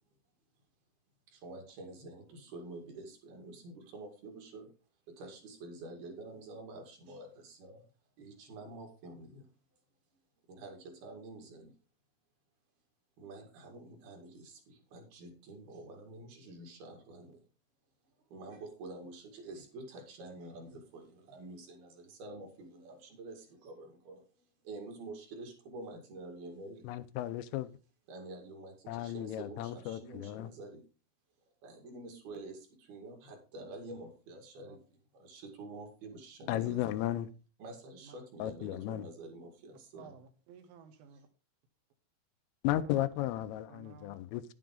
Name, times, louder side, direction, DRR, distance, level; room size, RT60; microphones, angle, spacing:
voice 1, 1.3-4.7 5.1-7.9 8.2-9.5 10.5-11.7 13.2-17.4 18.3-26.9 28.1-30.8 31.6-34.8 35.1-36.8 37.6-40.1, right 2 dB, 55° right, 3.6 m, -48 dB
voice 2, 26.8-27.7 28.9-30.5 36.5-37.3 38.4-39.1 42.6-44.4, left 13 dB, 90° left, 3.3 m, -34 dB
voice 3, 40.0-41.3 42.8-43.0 43.7-44.2, right 6 dB, 70° right, 3.2 m, -54 dB
10.5 x 9.0 x 3.8 m
omnidirectional pair, 5.7 m